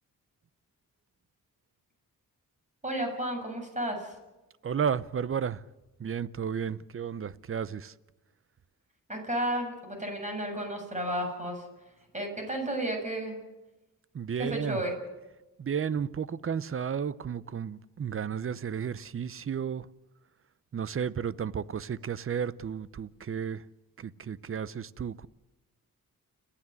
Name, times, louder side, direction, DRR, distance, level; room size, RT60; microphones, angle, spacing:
voice 1, 2.8-4.1 9.1-11.6 12.1-13.4 14.4-14.9, right 1 dB, 20° right, 7.5 m, -32 dB
voice 2, 4.6-5.6 6.0-7.9 14.1-14.8 15.6-19.9 20.7-23.6 24.0-25.3, right 7 dB, 40° right, 0.7 m, -33 dB
30.0 x 10.0 x 9.6 m
cardioid pair, 90°, 34 cm